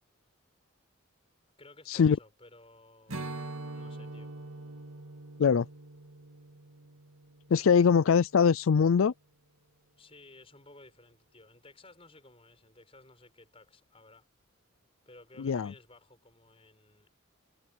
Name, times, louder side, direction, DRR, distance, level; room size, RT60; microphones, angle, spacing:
voice 1, 1.6-3.2 3.7-4.3 10.0-14.3 15.1-17.1, left 2 dB, 25° left, 6.3 m, -56 dB
Strum, 3.1-8.5, right 2 dB, 90° right, 2.7 m, -44 dB
voice 2, 7.5-9.1 15.4-15.7, left 6 dB, 75° left, 0.4 m, -22 dB
head